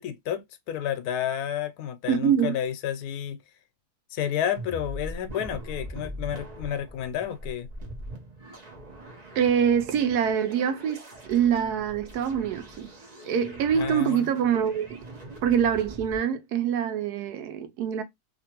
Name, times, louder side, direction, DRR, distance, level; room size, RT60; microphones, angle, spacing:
voice 1, 0.0-3.4 4.1-7.7 13.7-14.3, left 9 dB, 80° left, 1.1 m, -31 dB
voice 2, 2.1-2.6 9.4-11.0 11.3-12.9 13.3-14.9 15.4-18.0, right 8 dB, 85° right, 1.2 m, -24 dB
sound 1, 4.6-16.2, right 1 dB, 35° right, 0.7 m, -42 dB
2.8 x 2.5 x 2.8 m
omnidirectional pair, 1.6 m